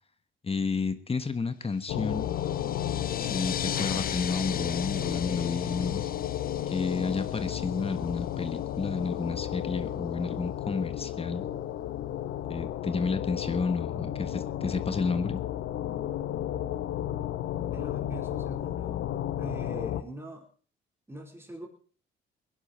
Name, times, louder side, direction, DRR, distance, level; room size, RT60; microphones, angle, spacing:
voice 1, 0.4-2.3 3.2-6.1 6.7-11.5 12.5-15.4, left 4 dB, 30° left, 11 dB, 1.4 m, -31 dB
sound 1, 1.9-20.0, left 11 dB, 80° left, 1.0 m, -33 dB
sound 2, 1.9-8.2, left 8 dB, 45° left, 0.8 m, -39 dB
voice 2, 17.6-19.0 19.4-20.5 21.1-21.7, right 1 dB, 10° right, 2 dB, 4.4 m, -43 dB
20.0 x 11.0 x 4.5 m, 0.41 s
cardioid pair, 90°, 20 cm